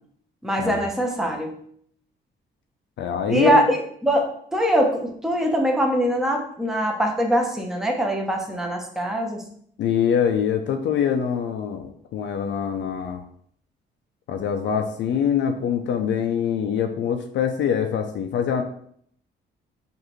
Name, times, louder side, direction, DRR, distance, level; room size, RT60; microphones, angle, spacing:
voice 1, 0.4-1.6 3.3-9.4, right 1 dB, ahead, 2 dB, 0.7 m, -23 dB
voice 2, 3.0-3.7 9.8-13.2 14.3-18.6, left 8 dB, 65° left, 5 dB, 0.4 m, -24 dB
4.8 x 2.6 x 3.0 m, 0.65 s
cardioid pair, 90°, 20 cm